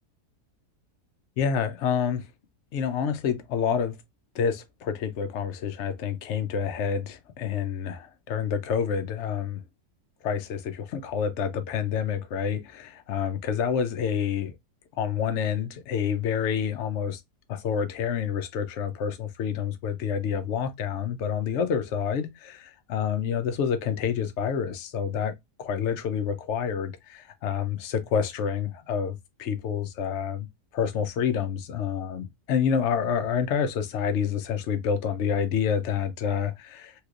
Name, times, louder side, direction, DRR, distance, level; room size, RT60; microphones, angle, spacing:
voice 1, 1.4-2.2 2.7-4.0 4.3-9.6 10.2-14.5 15.0-17.2 17.5-25.3 25.6-30.5 30.7-36.9, left 7 dB, 65° left, 0.7 m, -28 dB
3.2 x 3.2 x 2.4 m
omnidirectional pair, 1.7 m